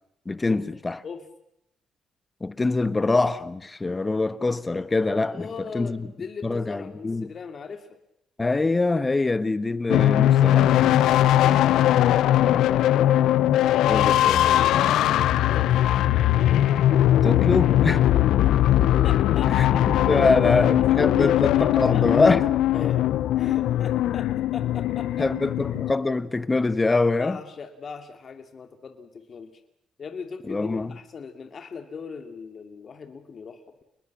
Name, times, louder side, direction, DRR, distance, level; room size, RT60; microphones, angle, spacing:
voice 1, 0.2-1.0 2.4-6.1 6.4-7.3 8.4-10.7 13.9-15.3 17.2-18.1 19.5-22.5 25.2-27.4 30.5-30.9, left 3 dB, 20° left, 1.5 m, -24 dB
voice 2, 5.3-8.0 12.2-13.2 15.5-15.9 18.1-18.3 19.0-20.9 21.2-22.1 22.7-23.1 23.4-25.3 27.2-29.5 30.0-33.8, left 5 dB, 45° left, 2.8 m, -38 dB
sound 1, 9.9-25.9, left 12 dB, 85° left, 0.9 m, -20 dB
29.0 x 21.0 x 7.6 m
cardioid pair, 90°, 0 cm